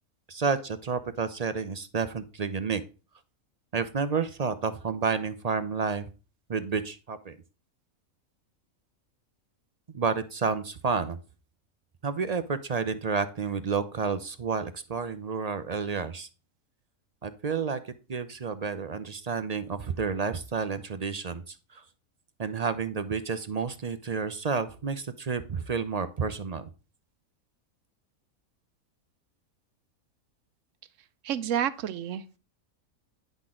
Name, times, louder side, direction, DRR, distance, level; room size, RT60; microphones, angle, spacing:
voice 1, 0.3-2.8 3.7-6.1 6.5-7.4 9.9-11.2 12.0-16.3 17.2-21.8 22.4-26.7, right 5 dB, 50° right, 0.5 m, -30 dB
voice 2, 31.2-32.4, right 10 dB, 65° right, 1.0 m, -30 dB
10.5 x 5.9 x 3.7 m
omnidirectional pair, 1.5 m